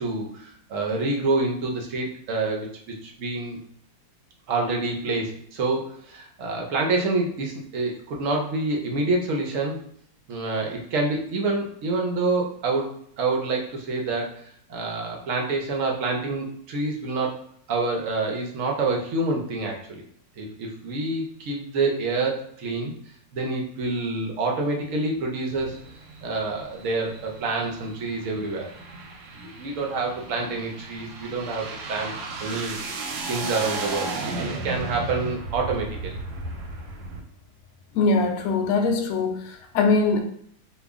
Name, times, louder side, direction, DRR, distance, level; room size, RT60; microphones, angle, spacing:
voice 1, 0.0-2.7 3.0-3.6 4.5-9.8 10.3-12.9 13.2-14.2 14.7-17.4 17.7-20.0 20.4-22.9 23.3-25.7 26.2-28.7 29.4-32.1 32.4-32.8 33.3-36.2, right 3 dB, 70° right, 0.7 m, -27 dB
sound 1, 25.5-37.2, right 3 dB, 90° right, 1.3 m, -35 dB
voice 2, 37.9-40.2, left 3 dB, 90° left, 0.7 m, -22 dB
2.9 x 2.4 x 3.5 m
omnidirectional pair, 2.0 m